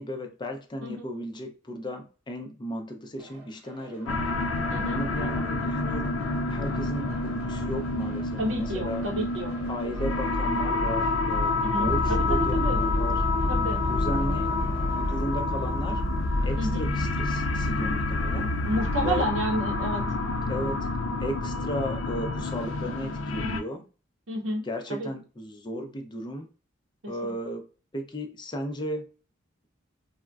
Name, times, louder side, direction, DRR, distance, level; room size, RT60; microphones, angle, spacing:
voice 1, 0.0-4.3 4.9-9.1 9.7-13.2 13.9-16.0 16.4-18.6 19.0-19.3 20.4-20.9 21.2-23.8 24.6-26.5 27.1-27.7 27.9-29.1, equal, 25° left, 4 dB, 0.5 m, -35 dB
sound 1, 3.2-15.2, right 2 dB, 10° right, 0.9 m, -48 dB
sound 2, 4.1-23.6, left 2 dB, 85° left, 0.4 m, -28 dB
voice 2, 4.7-5.0 8.4-9.5 11.6-12.8 13.5-13.8 16.6-16.8 18.6-20.0 23.4-23.6 24.3-24.6 24.9-25.1 27.2-27.3, right 1 dB, 75° right, 1 dB, 0.7 m, -30 dB
sound 3, 11.9-19.2, left 1 dB, 40° left, 0.9 m, -32 dB
3.5 x 2.1 x 2.3 m, 0.35 s
head